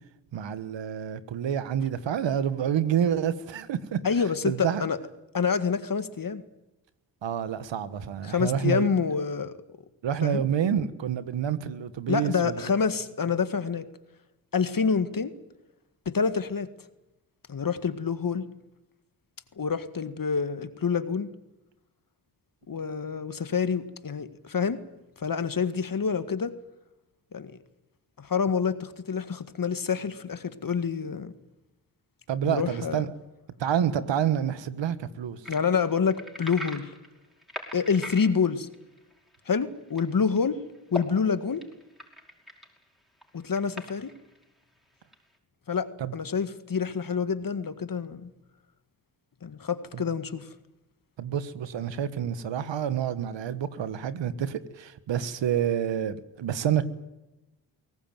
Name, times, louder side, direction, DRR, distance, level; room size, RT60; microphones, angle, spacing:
voice 1, 0.3-4.0 4.4-4.8 7.2-8.9 10.0-12.6 32.3-33.0 33.6-35.4 46.0-46.2 49.9-50.0 51.2-56.8, right 9 dB, 75° right, 1.5 m, -28 dB
voice 2, 4.0-5.0 5.3-6.4 8.2-9.6 10.2-10.4 12.1-13.9 14.5-15.3 16.1-16.7 17.5-18.4 19.6-21.3 22.7-24.8 25.2-26.5 27.3-27.6 28.2-31.3 32.4-33.0 35.5-36.9 37.7-38.7 39.5-40.6 40.9-41.6 43.3-44.1 45.7-48.3 49.4-50.5, left 6 dB, 45° left, 1.8 m, -27 dB
sound 1, 35.4-39.4 39.9-40.0 40.3-40.4 40.8-41.1 41.6-42.8 43.2-44.4 45.1-45.2, left 1 dB, ahead, 5.5 m, -39 dB
22.5 x 18.0 x 9.2 m
supercardioid pair, 45°, 44 cm